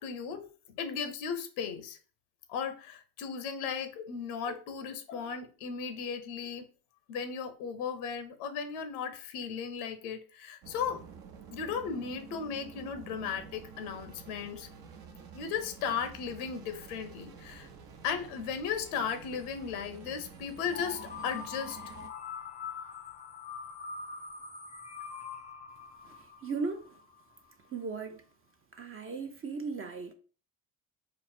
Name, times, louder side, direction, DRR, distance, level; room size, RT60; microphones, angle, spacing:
voice 1, 0.0-2.0 2.5-6.7 7.1-11.0 11.5-14.7 15.3-17.7 18.0-21.8, left 6 dB, 90° left, 0.8 m, -36 dB
sound 1, 10.6-22.1, right 6 dB, 55° right, 0.9 m, -50 dB
sound 2, 20.7-27.5, left 6 dB, 20° left, 0.5 m, -43 dB
voice 2, 26.0-27.0 27.7-28.2 28.7-30.1, right 4 dB, 30° right, 0.6 m, -37 dB
4.0 x 2.1 x 4.2 m
supercardioid pair, 75°, 42 cm